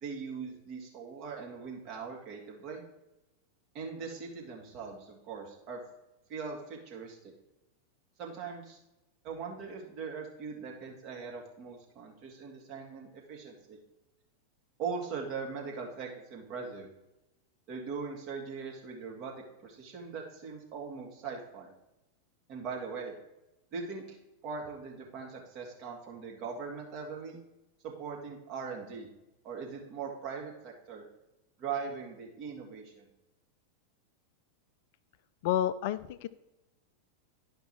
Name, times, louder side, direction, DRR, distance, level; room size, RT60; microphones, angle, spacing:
voice 1, 0.0-2.8 3.7-5.8 6.3-7.3 8.2-8.8 9.2-13.8 14.8-16.9 17.7-21.7 22.5-23.2 23.7-24.2 24.4-27.4 27.8-29.1 29.4-31.1 31.6-33.1, right 5 dB, 40° right, -1 dB, 2.2 m, -40 dB
voice 2, 35.4-36.3, left 11 dB, 50° left, 14 dB, 0.3 m, -30 dB
11.0 x 5.2 x 4.5 m, 0.95 s
figure-of-eight pair, 90°, 0 cm